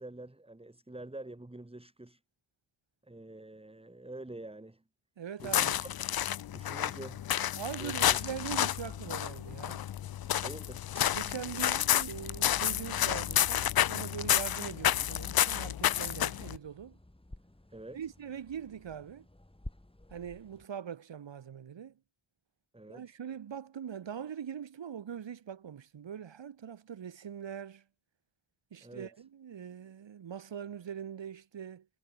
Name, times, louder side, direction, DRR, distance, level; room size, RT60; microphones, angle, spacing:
voice 1, 0.0-2.2 3.0-4.8 5.4-5.9 6.5-7.2 7.8-8.2 10.4-10.9 17.7-18.0 22.7-23.1 28.8-29.1, right 2 dB, 10° right, 2.6 m, -46 dB
voice 2, 5.2-5.8 7.6-9.9 11.1-17.0 17.9-19.2 20.1-21.9 22.9-27.8 28.7-31.9, right 8 dB, 70° right, 1.3 m, -42 dB
sound 1, 5.4-16.6, left 11 dB, 55° left, 0.5 m, -30 dB
sound 2, 7.9-20.7, left 1 dB, 10° left, 5.1 m, -54 dB
wide cardioid pair, 115°, 46 cm